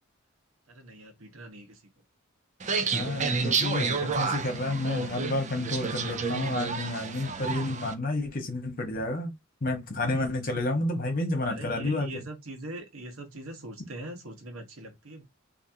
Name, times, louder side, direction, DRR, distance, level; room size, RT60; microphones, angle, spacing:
voice 1, 0.7-1.8 11.5-15.2, right 1 dB, 80° right, 1.1 m, -42 dB
sound 1, 2.6-7.9, right 5 dB, 35° right, 0.5 m, -30 dB
voice 2, 2.9-9.3 9.6-12.2, left 2 dB, 45° left, 1.4 m, -30 dB
3.5 x 2.8 x 2.7 m
head